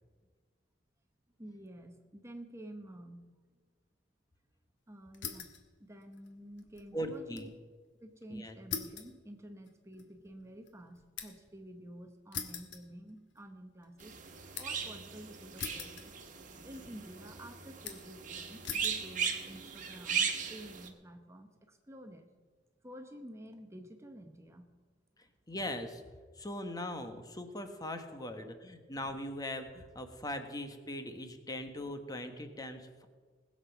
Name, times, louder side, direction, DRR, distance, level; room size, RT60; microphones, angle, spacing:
voice 1, 1.4-3.3 4.9-7.5 8.0-16.1 16.6-22.3 22.8-24.8 28.2-28.5, right 1 dB, 15° right, 6 dB, 0.9 m, -50 dB
sound 1, 5.1-5.7 6.0-7.5 7.8-7.9 8.7-11.5 12.3-13.5 13.8-14.9 15.6-16.5 16.7-17.3 17.8-18.2 18.6-19.0 19.7-20.1, left 7 dB, 75° left, 1.4 m, -43 dB
voice 2, 6.9-7.5 8.3-8.5 25.2-26.0 26.3-33.1, left 1 dB, 20° left, 7 dB, 1.3 m, -40 dB
sound 2, 14.0-20.9, right 6 dB, 45° right, 1.5 m, -38 dB
20.0 x 7.6 x 5.9 m, 1.5 s
head